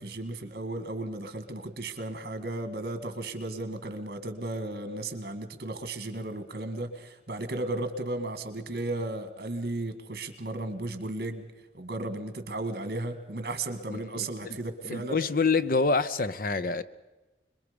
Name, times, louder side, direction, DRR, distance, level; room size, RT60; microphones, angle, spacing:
voice 1, 0.0-11.5 11.7-15.2, right 2 dB, 55° right, 1.9 m, -35 dB
voice 2, 13.9-14.6 14.8-16.8, left 4 dB, 50° left, 0.7 m, -27 dB
26.0 x 22.0 x 5.2 m
head